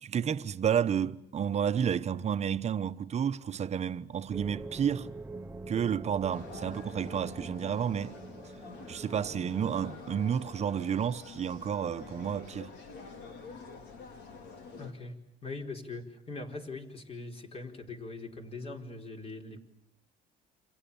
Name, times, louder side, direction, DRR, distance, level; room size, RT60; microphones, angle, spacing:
voice 1, 0.0-5.1 5.7-8.2 8.9-12.8, right 8 dB, 40° right, 1.0 m, -31 dB
sound 1, 4.3-10.0, right 3 dB, 10° right, 1.1 m, -44 dB
sound 2, 6.3-14.9, left 4 dB, 80° left, 4.2 m, -48 dB
voice 2, 14.8-19.6, left 3 dB, 35° left, 4.5 m, -42 dB
29.5 x 27.0 x 7.1 m
cardioid pair, 110°, 17 cm